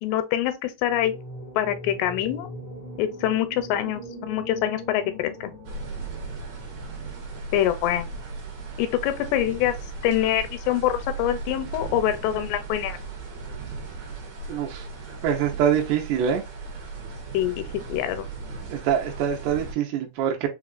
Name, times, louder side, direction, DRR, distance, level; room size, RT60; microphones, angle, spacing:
voice 1, 0.0-1.2 1.6-2.5 3.0-5.5 7.5-8.1 8.8-9.8 10.0-13.0 17.3-17.6 17.9-18.3, left 12 dB, 85° left, 2.6 m, -25 dB
sound 1, 0.8-7.0, left 1 dB, 45° left, 0.7 m, -40 dB
sound 2, 5.6-19.7, right 4 dB, 60° right, 2.1 m, -37 dB
voice 2, 14.5-14.8 15.2-16.4 18.7-20.5, right 8 dB, 80° right, 2.8 m, -24 dB
6.3 x 2.4 x 2.4 m
omnidirectional pair, 5.0 m